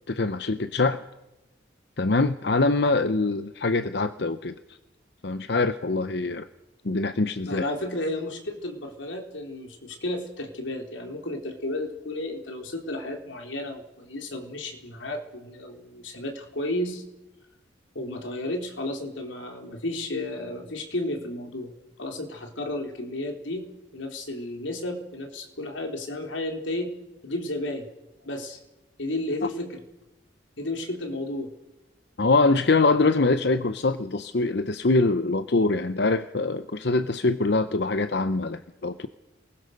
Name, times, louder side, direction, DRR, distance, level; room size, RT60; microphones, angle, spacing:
voice 1, 0.1-1.0 2.0-4.5 5.2-6.5 6.8-7.6 32.2-39.1, left 3 dB, 60° left, 10 dB, 0.8 m, -24 dB
voice 2, 7.5-17.0 17.9-21.7 22.0-26.9 27.2-27.9 28.2-28.6 29.0-29.8 30.6-31.5, left 1 dB, 90° left, 3 dB, 3.9 m, -32 dB
28.0 x 20.5 x 6.6 m, 0.99 s
head